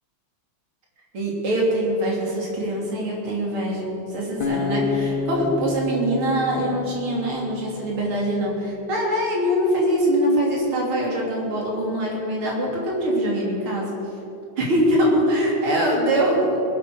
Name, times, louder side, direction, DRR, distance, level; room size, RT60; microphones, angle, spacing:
voice 1, 1.1-13.9 14.6-16.6, equal, 80° right, -2 dB, 3.9 m, -23 dB
Acoustic guitar, 4.4-7.6, left 4 dB, 80° left, 2.7 m, -28 dB
20.0 x 8.2 x 6.6 m, 2.9 s
omnidirectional pair, 2.3 m